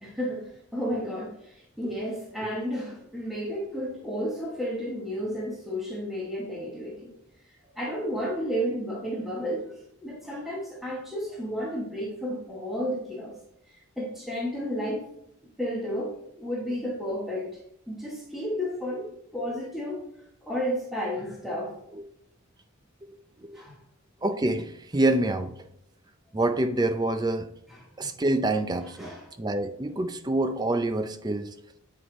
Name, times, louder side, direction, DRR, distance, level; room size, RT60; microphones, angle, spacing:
voice 1, 0.0-7.1 7.8-13.4 13.7-15.1 15.6-17.6 17.9-19.1 19.3-20.0 20.4-21.7 23.5-23.8 27.7-27.9 29.0-29.3, equal, ahead, -4 dB, 1.1 m, -32 dB
voice 2, 24.2-25.5 26.3-27.5 28.0-31.5, right 2 dB, 20° right, 9 dB, 0.4 m, -27 dB
8.0 x 4.7 x 3.6 m, 0.75 s
head